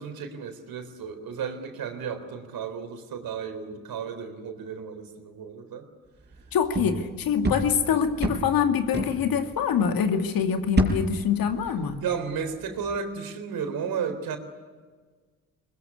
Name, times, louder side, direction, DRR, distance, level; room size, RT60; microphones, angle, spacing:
voice 1, 0.0-5.9 12.0-14.4, right 6 dB, 60° right, 7 dB, 3.9 m, -33 dB
sound 1, 6.3-10.0 10.4-12.4 12.6-12.9, right 2 dB, 25° right, 6.1 m, -30 dB
voice 2, 6.5-12.0, left 7 dB, 60° left, 6 dB, 2.4 m, -25 dB
22.0 x 20.5 x 9.9 m, 1.5 s
hypercardioid pair, 50°, 39 cm